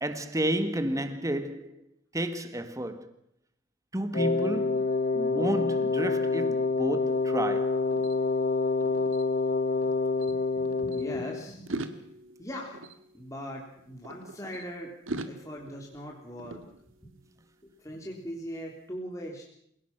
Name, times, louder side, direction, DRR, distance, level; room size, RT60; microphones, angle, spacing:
voice 1, 0.0-1.8 2.1-3.1 3.9-4.9 5.1-7.8, right 1 dB, 15° right, 1.7 m, -31 dB
Wind instrument woodwind instrument, 4.1-11.4, left 4 dB, 45° left, 0.8 m, -27 dB
sound 1, 7.0-9.9 10.2-11.0 11.5-14.6 15.1-17.3, right 2 dB, 80° right, 1.9 m, -43 dB
voice 2, 10.3-11.7 12.4-12.8 13.1-14.9 15.3-16.6 17.0-17.2 17.6-19.5, equal, 15° left, 3.3 m, -40 dB
28.0 x 18.0 x 5.9 m
head